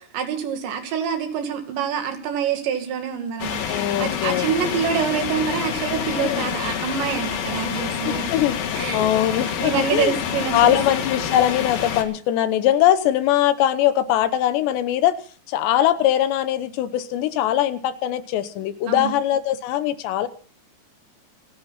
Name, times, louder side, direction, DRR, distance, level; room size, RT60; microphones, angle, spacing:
voice 1, 0.0-8.3 8.7-9.1 9.6-10.8 18.9-19.1, right 8 dB, 80° right, 5 dB, 4.5 m, -26 dB
sound 1, 3.4-12.0, left 8 dB, 60° left, 3.2 m, -27 dB
voice 2, 3.7-4.8 6.2-6.5 8.0-10.2 10.5-15.2 15.5-20.3, left 12 dB, 80° left, 12 dB, 3.2 m, -21 dB
29.0 x 10.0 x 4.1 m, 0.41 s
omnidirectional pair, 5.0 m